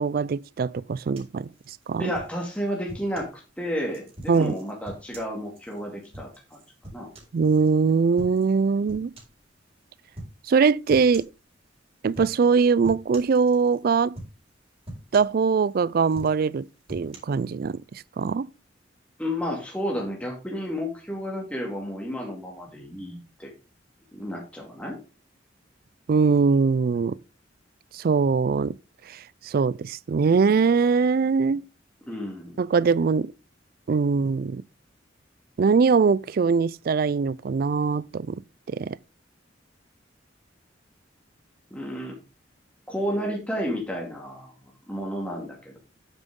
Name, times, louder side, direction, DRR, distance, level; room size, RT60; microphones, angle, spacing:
voice 1, 0.0-1.5 1.9-2.1 4.3-4.5 7.3-9.1 10.5-11.3 12.0-14.2 15.1-18.5 26.1-27.2 27.9-28.7 29.1-31.6 32.6-33.3 33.9-34.6 35.6-38.4 38.7-39.0, right 5 dB, 50° right, 0.4 m, -22 dB
sound 1, 1.1-3.4 3.9-7.7 8.2-8.6 8.9-9.4 10.1-10.4 10.9-11.4 12.1-12.5 12.8-13.8 14.1-14.5 14.8-15.7 16.1-17.2, right 1 dB, 35° right, 4.2 m, -43 dB
voice 2, 2.0-3.3 3.6-6.6 6.9-7.1 19.2-23.5 24.1-25.0 32.1-32.6 41.7-42.2 42.9-44.5 44.9-45.8, equal, 5° left, 2.2 m, -31 dB
9.1 x 8.1 x 3.7 m
head